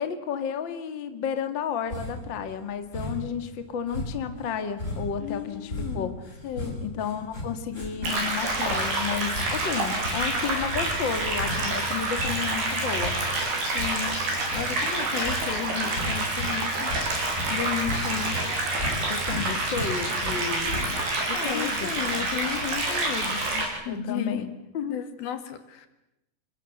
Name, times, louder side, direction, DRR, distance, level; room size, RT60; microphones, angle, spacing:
voice 1, 0.0-6.2 6.8-13.2 19.1-21.0 21.3-22.3 23.9-24.5 24.7-25.0, left 7 dB, 40° left, 8 dB, 2.0 m, -32 dB
sound 1, 1.9-2.3 2.9-3.4 3.9-16.5 16.8-18.0 18.3-20.4 20.7-21.2, left 1 dB, 20° left, 6.3 m, -36 dB
voice 2, 5.2-6.2 6.4-6.8 13.7-14.2 14.5-17.0 17.5-18.4 21.3-24.5 24.9-25.9, left 9 dB, 75° left, 9 dB, 3.8 m, -33 dB
sound 2, 8.0-23.7, right 2 dB, 90° right, 7.8 m, -28 dB
27.5 x 22.5 x 8.0 m, 0.89 s
omnidirectional pair, 4.4 m